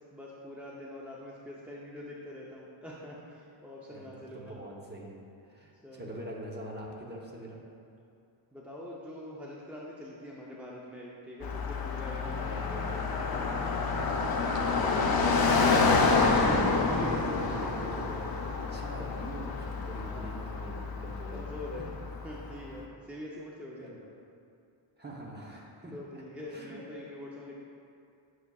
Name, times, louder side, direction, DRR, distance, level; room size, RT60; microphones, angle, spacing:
voice 1, 0.0-4.6 5.8-6.2 8.5-12.6 14.4-14.7 16.8-17.7 20.1-20.3 21.3-21.9 22.2-23.9 25.9-27.5, left 1 dB, 5° right, -5 dB, 0.4 m, -44 dB
voice 2, 4.3-5.2 5.4-7.6 12.4-16.5 17.3-21.5 23.8-23.9 25.0-25.9 26.5-26.8, right 1 dB, 20° right, -2 dB, 0.8 m, -44 dB
Car passing by, 11.4-22.5, left 4 dB, 50° left, 0.6 m, -28 dB
9.6 x 6.3 x 2.3 m, 2.5 s
wide cardioid pair, 170°, 49 cm